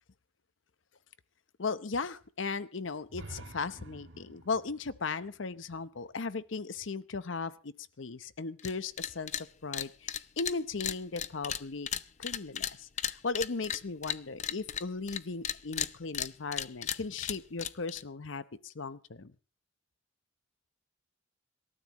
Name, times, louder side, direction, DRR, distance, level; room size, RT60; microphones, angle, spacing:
voice 1, 1.6-11.9 12.2-19.3, left 4 dB, 85° left, 14 dB, 0.9 m, -37 dB
sound 1, 3.1-6.9, right 1 dB, 85° right, 2.1 m, -50 dB
sound 2, 8.6-8.7 9.0-9.4 9.7-15.2 15.4-18.0, left 9 dB, 40° left, 0.6 m, -35 dB
26.0 x 13.0 x 3.1 m, 0.36 s
head